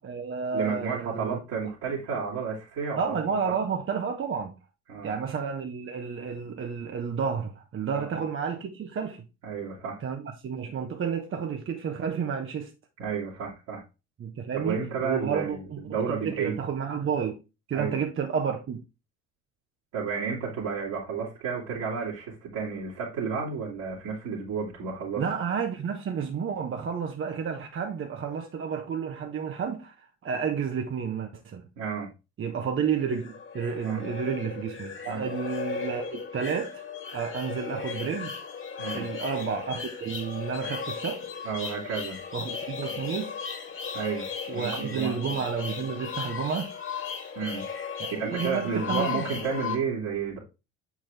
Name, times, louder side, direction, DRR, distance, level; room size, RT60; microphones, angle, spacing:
voice 1, 0.0-1.4 3.0-4.5 5.0-9.2 10.0-12.7 14.2-15.8 16.1-17.4 17.7-18.8 25.2-31.6 32.4-36.8 37.1-38.3 38.9-41.3 42.3-43.3 44.5-46.7 48.0-49.2, right 6 dB, 35° right, 1.1 m, -31 dB
voice 2, 0.5-3.2 3.5-3.6 4.9-5.1 7.9-8.1 9.4-10.0 13.0-13.8 14.5-16.6 17.7-18.0 19.9-25.2 31.8-32.1 33.8-34.1 35.1-35.3 38.8-39.1 41.4-42.2 43.9-45.4 47.4-47.7 48.1-50.4, right 6 dB, 60° right, 2.4 m, -32 dB
sound 1, 32.8-49.8, left 6 dB, 30° left, 1.9 m, -36 dB
7.4 x 4.8 x 3.4 m
figure-of-eight pair, 60°, 38 cm